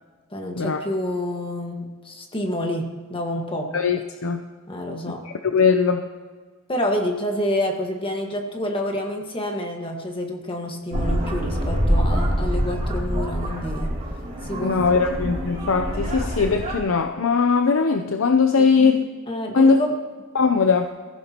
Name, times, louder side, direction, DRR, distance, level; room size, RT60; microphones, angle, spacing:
voice 1, 0.3-3.7 4.7-5.2 6.7-14.0 14.4-14.8 18.6-19.0 19.3-19.9, left 1 dB, 25° left, 2 dB, 1.6 m, -28 dB
voice 2, 3.7-4.4 5.2-6.1 14.6-19.1 19.5-19.8 20.3-20.9, left 5 dB, 80° left, 6 dB, 0.7 m, -20 dB
sound 1, 10.9-16.8, equal, 35° right, 3.1 m, -25 dB
22.0 x 15.0 x 3.0 m, 1.5 s
head